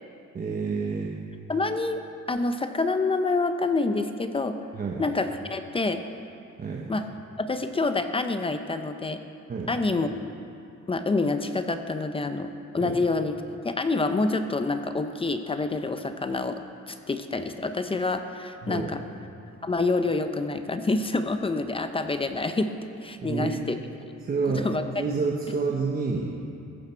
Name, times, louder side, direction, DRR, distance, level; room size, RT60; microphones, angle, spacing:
voice 1, 0.3-1.1 4.7-5.0 6.6-6.9 9.5-9.7 12.8-13.0 18.6-18.9 23.2-23.6 24.2-24.7 25.0-26.3, right 4 dB, 30° right, -2 dB, 1.0 m, -28 dB
voice 2, 1.5-2.0 2.3-4.6 5.0-6.0 6.9-7.0 7.4-9.2 9.7-10.1 10.9-13.4 13.6-16.6 16.9-19.0 19.6-22.7 23.0-23.8 24.5-24.8, left 3 dB, 20° left, 8 dB, 0.5 m, -27 dB
15.0 x 14.5 x 4.4 m, 2.6 s
cardioid pair, 155°, 29 cm